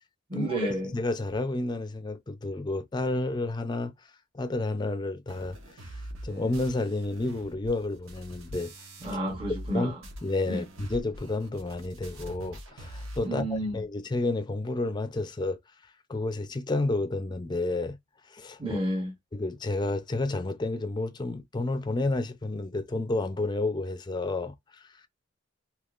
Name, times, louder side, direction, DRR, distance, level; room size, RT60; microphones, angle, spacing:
voice 1, 0.3-0.9 9.0-10.0 10.5-10.7 13.2-13.8 18.6-19.1, right 1 dB, 25° right, 0.8 m, -31 dB
voice 2, 0.9-3.9 4.3-5.6 6.2-8.7 9.7-9.9 10.2-15.6 16.1-18.0 18.3-18.8 19.3-24.5, left 2 dB, 20° left, 0.4 m, -30 dB
sound 1, 5.3-9.8 10.0-13.3, equal, 85° right, 1.2 m, -43 dB
3.6 x 2.9 x 2.4 m
head